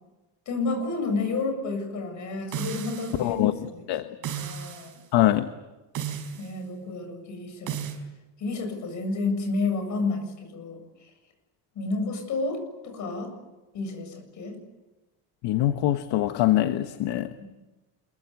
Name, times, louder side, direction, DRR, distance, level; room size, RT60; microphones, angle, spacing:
voice 1, 0.5-3.8 4.2-5.0 6.4-7.8 8.4-11.1 11.7-13.3 13.7-14.6 17.4-17.5, left 3 dB, 45° left, 6 dB, 7.7 m, -31 dB
sound 1, 2.5-3.3 4.2-4.9 5.9-6.5 7.7-8.0, right 9 dB, 50° right, 4.9 m, -34 dB
voice 2, 3.2-3.5 3.9-4.1 5.1-5.5 15.4-17.3, left 14 dB, 65° left, 9 dB, 1.3 m, -23 dB
27.5 x 23.5 x 8.4 m, 1.1 s
cardioid pair, 175°, 41 cm